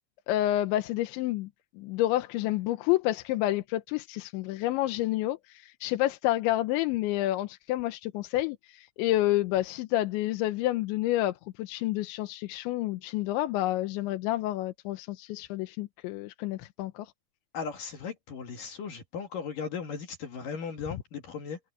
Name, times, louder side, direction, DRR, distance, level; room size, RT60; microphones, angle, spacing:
voice 1, 0.3-1.5 1.8-17.1, left 15 dB, 75° left, 3.1 m, -29 dB
voice 2, 17.5-21.6, left 6 dB, 55° left, 2.9 m, -37 dB
omnidirectional pair, 5.7 m